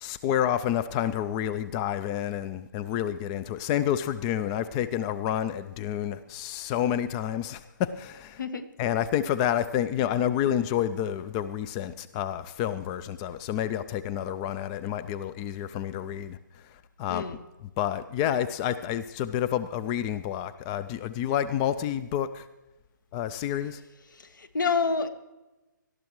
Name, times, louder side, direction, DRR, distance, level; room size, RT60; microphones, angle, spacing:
voice 1, 0.0-8.4 8.8-17.2 17.8-22.5 23.1-23.8, left 10 dB, 20° left, 14 dB, 0.3 m, -29 dB
voice 2, 8.4-8.7 17.1-17.4 24.1-25.1, left 4 dB, 70° left, 11 dB, 1.4 m, -28 dB
19.5 x 12.5 x 3.1 m, 1.1 s
figure-of-eight pair, 145°, 11 cm